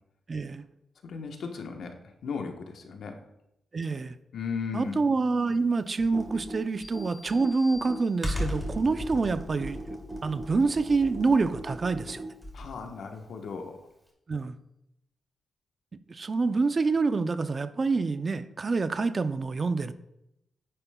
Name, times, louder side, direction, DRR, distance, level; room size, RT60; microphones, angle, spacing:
voice 1, 0.3-0.6 3.7-4.1 4.7-9.9 10.2-12.2 14.3-14.6 16.1-19.9, right 4 dB, 35° right, 11 dB, 0.5 m, -27 dB
voice 2, 1.0-3.2 4.3-5.0 12.5-13.9, left 5 dB, 75° left, 4 dB, 1.1 m, -36 dB
Computer keyboard, 6.0-12.8, equal, ahead, 2.5 m, -36 dB
sound 1, 6.8-8.6, left 3 dB, 35° left, 3.1 m, -49 dB
9.9 x 8.8 x 2.3 m, 0.83 s
cardioid pair, 115°, 0 cm